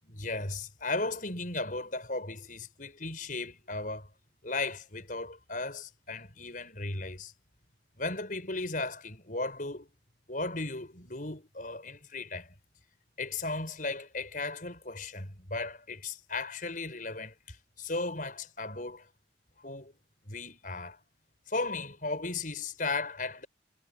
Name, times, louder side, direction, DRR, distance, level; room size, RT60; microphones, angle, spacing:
voice 1, 0.1-4.1 4.4-7.3 8.0-9.9 10.3-12.5 13.2-19.0 19.6-19.9 20.3-21.0 21.5-23.5, left 3 dB, 45° left, 6.7 m, -36 dB
head